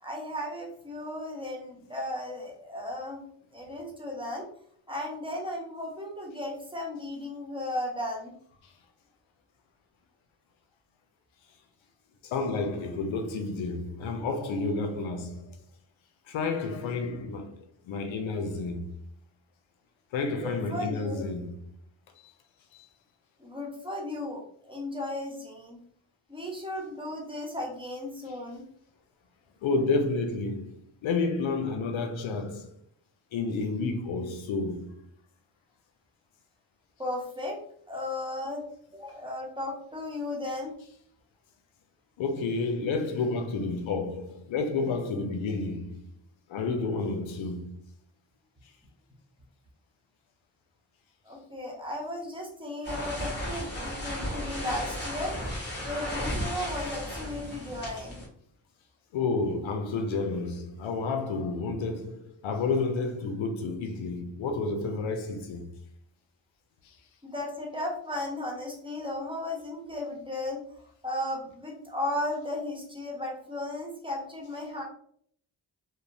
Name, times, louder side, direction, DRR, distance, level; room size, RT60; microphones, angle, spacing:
voice 1, 0.0-3.2 3.5-4.4 4.9-8.3 20.4-21.2 23.4-25.8 26.3-28.7 37.0-37.6 37.9-38.6 38.9-40.8 51.2-55.3 55.8-58.2 67.2-74.8, left 1 dB, 10° right, 1.0 m, -35 dB
voice 2, 12.2-15.6 16.3-18.9 20.1-21.5 29.6-32.7 33.3-35.1 42.2-46.0 46.5-47.8 59.1-65.7 66.8-66.9, left 3 dB, 90° left, 0.5 m, -30 dB
sound 1, 52.8-58.3, equal, 25° left, 1.3 m, -34 dB
2.8 x 2.1 x 2.6 m
cardioid pair, 40°, 45 cm